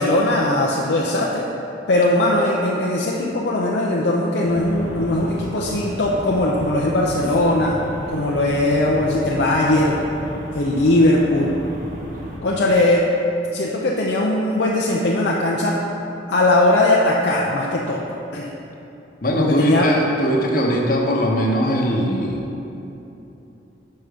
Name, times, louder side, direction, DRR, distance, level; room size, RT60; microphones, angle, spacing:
voice 1, 0.0-1.5 1.9-7.7 8.1-10.0 10.5-11.6 12.4-13.0 13.5-15.8 16.3-18.5 19.4-19.9, left 1 dB, 65° left, -3 dB, 0.6 m, -19 dB
sound 1, 4.5-12.4, equal, 45° right, 1.0 m, -34 dB
voice 2, 19.2-22.4, equal, 50° left, -1 dB, 0.9 m, -20 dB
6.4 x 5.8 x 4.9 m, 2.9 s
head